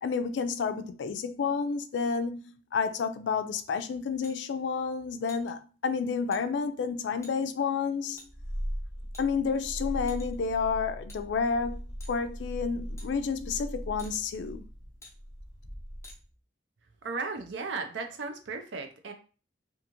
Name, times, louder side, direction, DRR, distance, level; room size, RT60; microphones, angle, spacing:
voice 1, 0.0-2.4 2.7-8.2 9.2-11.8 12.1-14.6, left 5 dB, 75° left, 0.3 m, -30 dB
sound 1, 4.2-4.4 5.3-5.5 6.3-6.4 7.2-7.3 8.2-8.3 9.1-9.6 10.1-10.4 11.1-11.2 12.0-12.2 13.0-13.1 14.0-14.1 15.0-15.1 16.0-16.2, left 2 dB, 15° left, 0.5 m, -50 dB
Purr, 8.2-16.3, equal, 15° right, 1.1 m, -39 dB
voice 2, 17.0-19.1, right 4 dB, 80° right, 0.5 m, -35 dB
2.5 x 2.4 x 2.9 m
head